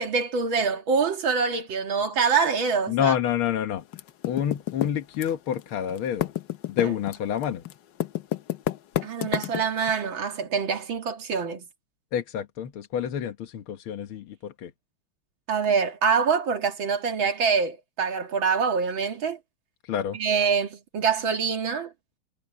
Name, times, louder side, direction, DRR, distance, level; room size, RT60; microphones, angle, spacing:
voice 1, 0.0-3.1 6.8-6.9 9.0-11.6 15.5-19.4 20.1-21.9, right 5 dB, 70° right, 2.7 m, -25 dB
voice 2, 2.9-3.8 4.2-6.3 6.7-7.6 12.1-14.7 19.8-20.2, left 9 dB, 80° left, 2.1 m, -28 dB
Typing, 3.9-5.6 5.9-9.9, left 12 dB, 65° left, 1.3 m, -29 dB
omnidirectional pair, 2.3 m